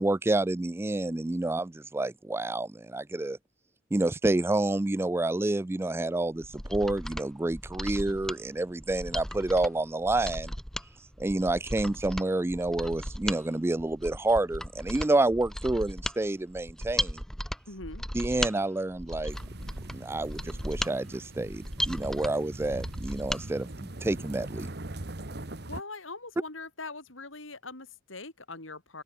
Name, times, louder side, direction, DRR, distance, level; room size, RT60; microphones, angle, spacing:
voice 1, 0.0-3.4 3.9-10.5 11.2-17.2 18.1-19.4 19.9-24.7, right 2 dB, 10° right, 0.3 m, -29 dB
Mechanisms, 6.4-23.4 23.8-23.9, equal, 5° left, 3.3 m, -36 dB
voice 2, 17.7-18.0 25.7-29.0, left 3 dB, 85° left, 6.7 m, -42 dB
sound 1, 19.3-25.8, right 1 dB, 55° right, 1.7 m, -41 dB
open air
head